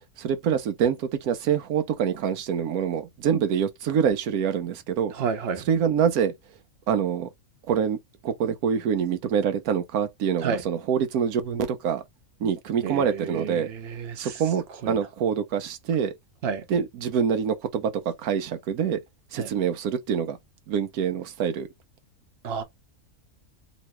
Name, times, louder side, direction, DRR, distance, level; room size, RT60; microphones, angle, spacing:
voice 1, 0.2-5.1 5.7-6.3 6.9-7.3 7.7-8.0 8.2-12.0 12.4-13.7 14.2-16.1 16.7-19.0 19.3-20.4 20.7-21.7, right 7 dB, 85° right, 1.1 m, -25 dB
voice 2, 5.2-5.6 10.4-10.6 12.8-14.3 14.8-14.9 16.4-16.6 19.4-19.5 22.4-22.6, right 6 dB, 50° right, 1.0 m, -30 dB
3.1 x 2.7 x 3.0 m
omnidirectional pair, 1.5 m